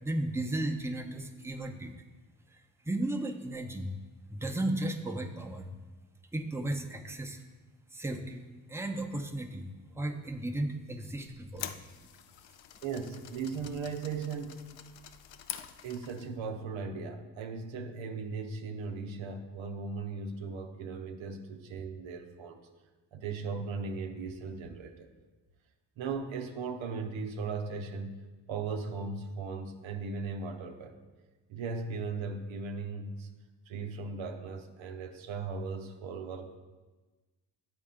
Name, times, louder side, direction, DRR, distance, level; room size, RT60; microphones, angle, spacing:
voice 1, 0.0-1.9 2.8-3.9 4.3-5.7 6.3-7.4 7.9-9.6 10.0-11.7, right 1 dB, 5° right, 3 dB, 0.8 m, -34 dB
sound 1, 11.2-16.4, left 10 dB, 70° left, 0.6 m, -46 dB
voice 2, 12.8-15.0 15.8-22.6 23.1-25.1 26.0-28.2 28.5-31.0 31.5-33.3 33.7-36.6, right 4 dB, 80° right, 5 dB, 0.7 m, -37 dB
9.8 x 4.3 x 3.7 m, 1.2 s
supercardioid pair, 50°, 45 cm